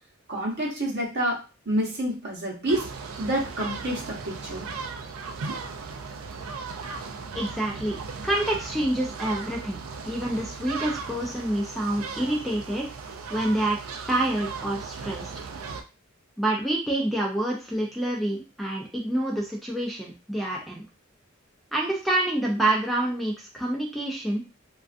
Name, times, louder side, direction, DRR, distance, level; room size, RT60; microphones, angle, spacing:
voice 1, 0.3-2.9 3.2-4.7, right 1 dB, 55° right, -2 dB, 0.9 m, -28 dB
sound 1, 2.7-15.8, right 4 dB, 90° right, 0.4 m, -37 dB
voice 2, 7.4-8.0 8.2-9.8 10.1-12.9 13.3-13.8 14.1-15.3 16.4-20.8 21.7-24.4, right 1 dB, ahead, -2 dB, 0.4 m, -27 dB
2.4 x 2.3 x 2.4 m, 0.30 s
head